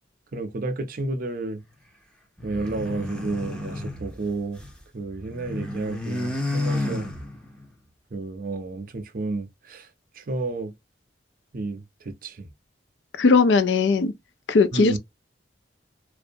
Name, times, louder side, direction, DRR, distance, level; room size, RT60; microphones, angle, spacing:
voice 1, 0.3-1.6 2.4-4.6 4.9-7.1 8.1-9.9 10.2-10.7 11.5-12.5 14.7-15.0, right 3 dB, 50° right, 0.5 m, -31 dB
sound 1, 2.4-4.8 5.1-7.7, left 2 dB, 5° left, 0.6 m, -31 dB
voice 2, 13.2-14.1 14.5-15.0, left 4 dB, 80° left, 0.4 m, -18 dB
2.6 x 2.1 x 2.5 m
head